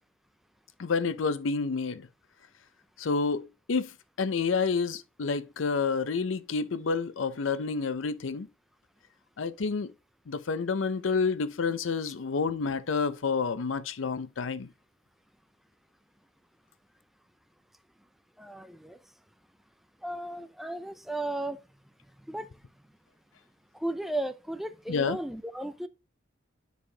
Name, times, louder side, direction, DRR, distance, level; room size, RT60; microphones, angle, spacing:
voice 1, 0.8-2.1 3.0-3.9 4.2-8.5 9.4-9.9 10.3-14.7 24.9-25.2, left 4 dB, 80° left, 0.5 m, -29 dB
voice 2, 18.4-19.0 20.0-21.6 22.3-22.5 23.7-25.9, right 1 dB, ahead, 0.4 m, -35 dB
9.1 x 4.8 x 2.8 m
head